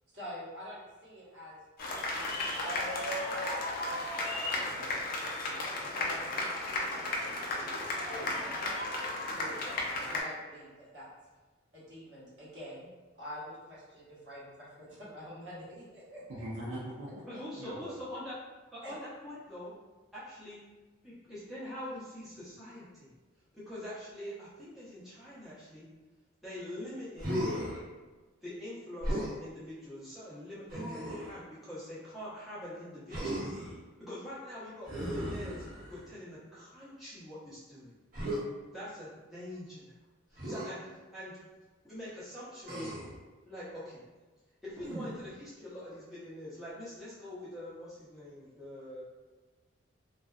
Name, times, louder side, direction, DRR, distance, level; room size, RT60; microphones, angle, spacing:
voice 1, 0.1-1.6 2.0-3.5 3.8-4.4 4.7-5.0 5.4-5.7 5.9-6.6 6.9-8.4 9.4-9.8 10.1-11.1 11.7-12.9 13.2-16.4 18.8-19.0, left 1 dB, 60° right, -9 dB, 1.1 m, -46 dB
sound 1, 1.8-10.2, left 2 dB, 45° left, 0.4 m, -34 dB
voice 2, 16.3-17.2 17.5-17.9, right 1 dB, 75° right, -4 dB, 0.4 m, -40 dB
voice 3, 17.3-18.4 18.7-19.7 20.1-20.6 21.0-23.1 23.5-25.9 26.4-27.4 28.4-33.5 34.0-37.9 38.7-39.9 40.3-40.9 41.1-41.4 41.8-42.9 43.5-44.0 44.6-49.0, left 1 dB, ahead, -12 dB, 0.7 m, -44 dB
Human voice, 27.2-27.8 29.0-29.4 30.7-31.4 33.1-33.8 34.9-36.1 38.1-38.4 40.4-40.7 42.6-43.2 44.8-45.3, equal, 45° right, 0.7 m, -36 dB
2.5 x 2.3 x 2.3 m, 1.3 s
head